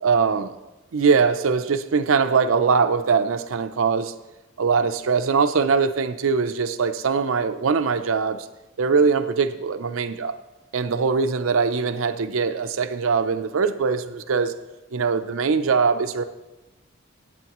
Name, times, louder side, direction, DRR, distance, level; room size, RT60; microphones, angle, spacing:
voice 1, 0.0-0.5 0.9-4.1 4.6-8.5 8.8-10.4 10.7-14.5 14.9-16.2, right 5 dB, 90° right, 10 dB, 0.5 m, -22 dB
15.0 x 8.6 x 3.0 m, 1.0 s
head